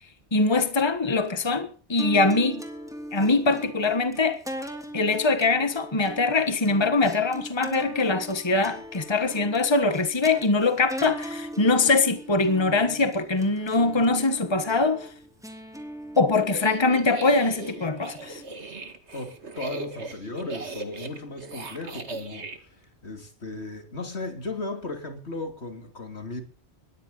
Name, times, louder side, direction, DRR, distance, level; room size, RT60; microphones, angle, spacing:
voice 1, 0.3-2.6 3.1-4.4 4.9-15.1 16.2-18.4, left 3 dB, 25° left, 1.5 m, -23 dB
sound 1, 2.0-18.4, equal, 5° right, 3.1 m, -40 dB
sound 2, 16.4-22.6, right 3 dB, 80° right, 2.3 m, -39 dB
voice 2, 19.1-26.4, left 2 dB, 75° left, 3.3 m, -36 dB
20.5 x 14.5 x 4.0 m
omnidirectional pair, 1.1 m